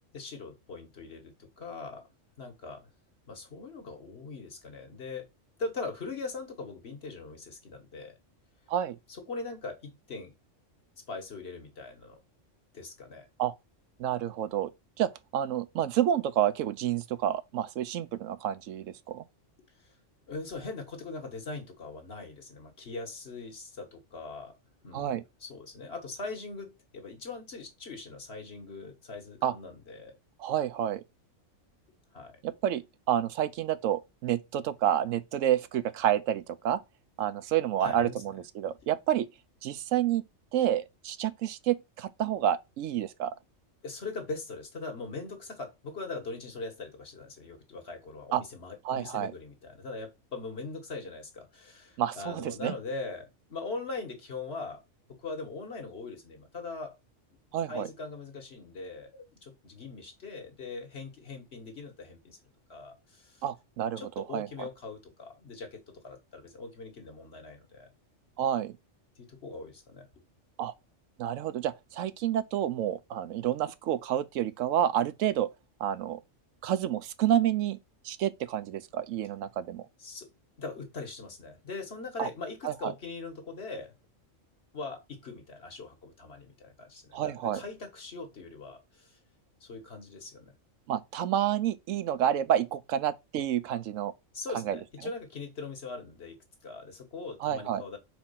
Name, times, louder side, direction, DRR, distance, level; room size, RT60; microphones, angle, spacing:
voice 1, 0.1-2.1 2.4-2.9 3.3-5.3 5.6-8.2 9.1-10.4 11.1-12.2 12.7-13.3 19.8-19.9 20.3-24.6 24.8-30.2 32.1-32.4 37.8-38.2 43.8-54.8 55.1-57.0 57.7-62.4 62.7-63.4 64.0-67.9 69.2-70.1 80.0-80.3 80.6-83.9 84.7-89.1 89.6-90.5 94.3-96.4 96.6-98.0, left 3 dB, 55° left, 1.7 m, -41 dB
voice 2, 14.0-14.7 15.0-19.2 24.9-25.2 29.4-29.5 30.4-31.0 32.4-36.8 37.2-39.3 39.6-40.2 40.5-43.3 48.3-48.4 48.8-49.3 52.0-52.7 57.5-57.9 63.4-64.7 68.4-68.7 70.6-70.7 71.2-75.5 75.8-76.2 76.6-77.8 78.0-79.9 82.2-82.3 82.6-82.9 87.1-87.6 90.9-94.1 94.7-94.8 97.4-97.8, right 11 dB, 80° right, 1.0 m, -29 dB
4.4 x 4.3 x 5.7 m
omnidirectional pair, 1.3 m